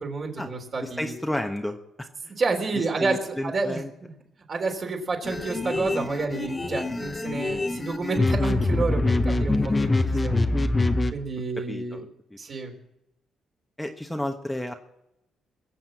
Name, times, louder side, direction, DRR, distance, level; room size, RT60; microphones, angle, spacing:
voice 1, 0.0-1.1 2.4-3.2 3.4-4.1 4.5-10.4 11.1-12.0 12.4-12.7, right 3 dB, 45° right, 2 dB, 3.8 m, -29 dB
voice 2, 0.8-1.8 2.2-2.3 2.7-3.9 9.9-10.1 11.7-12.1 13.8-14.7, left 1 dB, 5° left, 3 dB, 1.2 m, -32 dB
sound 1, 5.3-11.1, left 2 dB, 20° left, 1.1 m, -24 dB
22.0 x 7.5 x 7.6 m, 0.87 s
cardioid pair, 90°, 0 cm